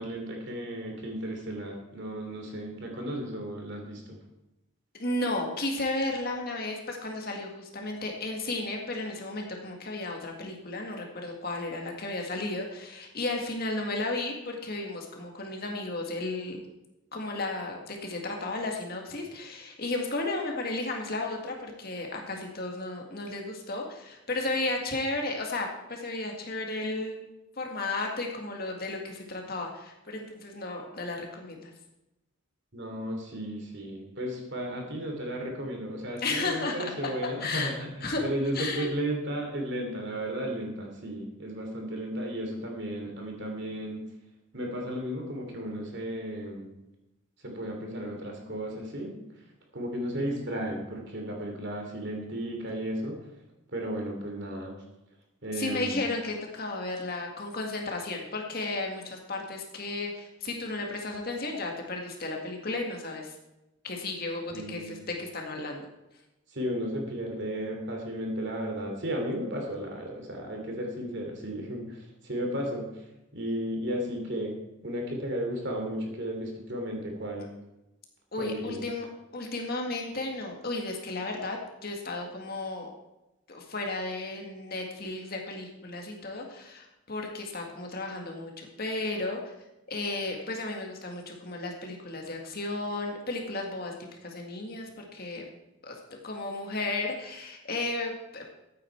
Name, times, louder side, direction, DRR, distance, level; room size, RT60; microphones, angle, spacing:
voice 1, 0.0-4.2 32.7-44.1 44.5-46.7 47.4-49.2 49.7-53.2 53.7-54.7 55.4-56.0 64.5-65.0 66.5-73.0 73.3-74.6 74.8-77.5 78.4-78.8, equal, 55° right, 2 dB, 3.0 m, -34 dB
voice 2, 4.9-16.6 17.1-27.3 27.6-31.7 36.2-36.8 37.2-37.7 38.0-38.2 38.5-38.9 55.5-63.3 63.8-65.8 78.3-79.1 79.3-82.9 83.5-89.5 89.9-93.9 94.2-95.4 95.8-96.0 96.2-98.5, left 2 dB, 45° left, 1 dB, 2.0 m, -34 dB
14.0 x 9.0 x 4.6 m, 0.94 s
head